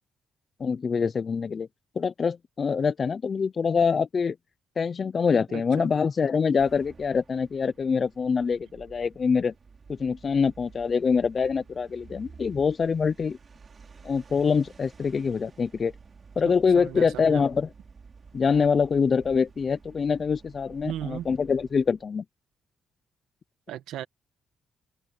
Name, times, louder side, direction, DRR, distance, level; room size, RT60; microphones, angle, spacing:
voice 1, 0.6-1.7 2.0-4.4 4.8-9.5 9.9-13.4 14.0-15.9 16.4-17.7 18.3-22.2, left 5 dB, 40° left, 0.7 m, -25 dB
voice 2, 5.5-5.9 16.4-17.4 20.8-21.3 23.7-24.1, right 12 dB, 85° right, 1.5 m, -36 dB
sound 1, 6.6-22.1, right 5 dB, 40° right, 5.1 m, -51 dB
cardioid pair, 90°, 0 cm